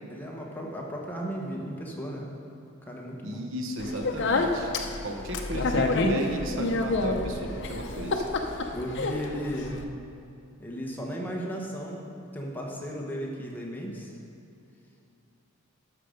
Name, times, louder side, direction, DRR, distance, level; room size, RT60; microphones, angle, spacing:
voice 1, 0.1-2.3 2.9-3.4 8.7-9.8 10.6-14.2, equal, 10° left, -2 dB, 1.1 m, -35 dB
voice 2, 3.2-4.7 5.0-8.3, right 1 dB, 60° right, 2 dB, 1.0 m, -35 dB
Speech, 3.8-9.8, left 2 dB, 55° left, 0.7 m, -28 dB
12.0 x 6.7 x 5.1 m, 2.6 s
head